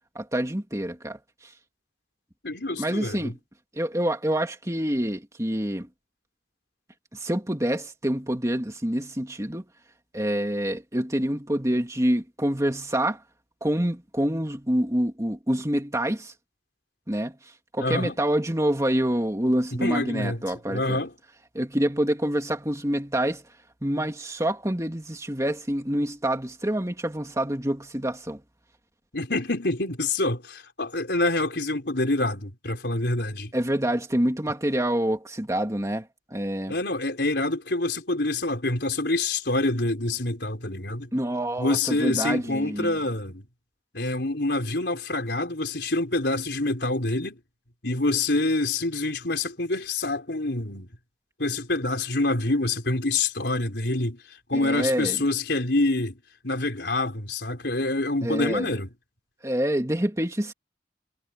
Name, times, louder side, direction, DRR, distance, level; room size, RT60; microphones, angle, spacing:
voice 1, 0.1-1.2 2.8-3.3 3.7-5.9 7.1-9.6 10.1-13.2 13.6-16.3 17.1-17.4 17.7-21.0 21.5-23.4 23.8-28.4 33.5-36.7 41.1-43.0 54.5-55.2 58.2-58.7 59.4-60.5, right 1 dB, 15° right, 2.5 m, -26 dB
voice 2, 2.4-3.3 17.8-18.2 19.7-21.1 29.1-33.5 36.7-41.1 41.6-43.5 43.9-47.4 47.8-50.9 51.4-54.2 54.5-56.2 56.4-58.9, left 2 dB, 65° left, 4.6 m, -26 dB
head